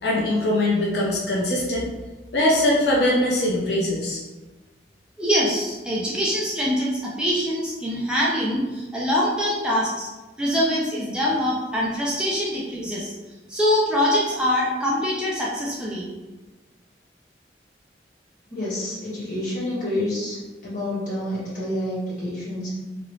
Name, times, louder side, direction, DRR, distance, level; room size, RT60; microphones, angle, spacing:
voice 1, 0.0-1.9 2.3-4.2, left 1 dB, 70° left, -3 dB, 0.5 m, -21 dB
voice 2, 5.2-10.1 10.4-13.1 13.5-16.1, equal, 5° right, -6 dB, 0.4 m, -24 dB
voice 3, 18.5-20.4 20.6-22.7, left 1 dB, 45° left, -9 dB, 1.4 m, -28 dB
2.9 x 2.5 x 3.1 m, 1.2 s
head